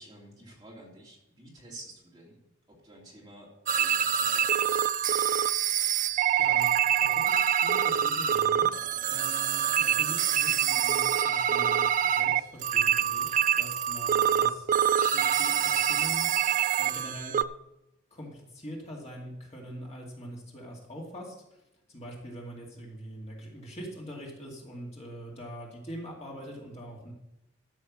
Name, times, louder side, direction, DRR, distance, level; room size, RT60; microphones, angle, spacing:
voice 1, 0.0-4.8, right 1 dB, 20° right, -4 dB, 2.9 m, -50 dB
sound 1, 3.7-17.4, right 9 dB, 40° right, 0.3 m, -25 dB
voice 2, 6.4-6.7 7.0-8.7 9.1-14.7 15.1-16.3 16.8-17.4 18.1-21.3 21.9-27.1, equal, 30° left, -2 dB, 2.2 m, -43 dB
13.5 x 6.3 x 6.1 m, 0.91 s
head